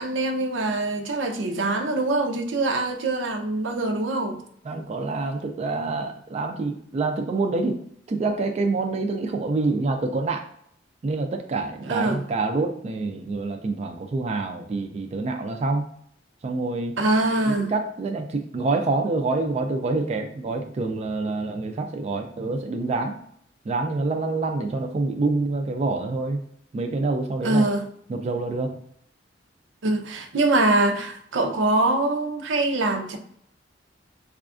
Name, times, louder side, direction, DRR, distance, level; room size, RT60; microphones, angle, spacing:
voice 1, 0.0-4.4 11.9-12.2 17.0-17.7 27.4-27.8 29.8-33.2, right 2 dB, 85° right, 0.6 m, -23 dB
voice 2, 4.6-7.8 8.1-10.4 11.0-15.9 16.4-17.0 17.5-23.2 23.7-26.4 26.7-27.7 28.1-28.8, right 3 dB, 35° right, 0.3 m, -26 dB
4.9 x 2.3 x 2.4 m
head